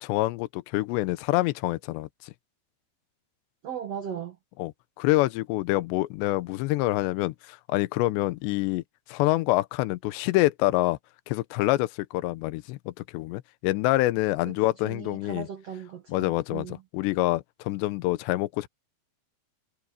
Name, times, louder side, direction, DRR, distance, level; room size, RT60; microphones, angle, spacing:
voice 1, 0.0-2.1 4.6-4.7 5.0-8.8 9.1-11.0 11.3-15.5 16.1-16.7 16.9-18.7, left 18 dB, 80° left, 2.9 m, -26 dB
voice 2, 3.6-4.4 14.5-16.8, right 8 dB, 85° right, 1.4 m, -38 dB
omnidirectional pair, 5.2 m